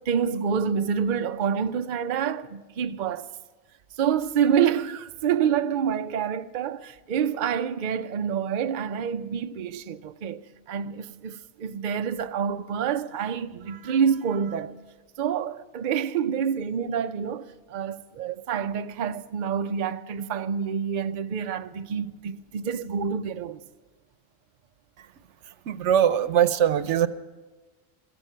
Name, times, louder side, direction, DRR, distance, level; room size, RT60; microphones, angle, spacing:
voice 1, 0.0-3.3 4.0-14.7 15.2-23.6, right 7 dB, 50° right, 0.6 m, -27 dB
voice 2, 25.7-27.1, right 9 dB, 85° right, 1.0 m, -21 dB
16.0 x 14.5 x 5.7 m
omnidirectional pair, 1.2 m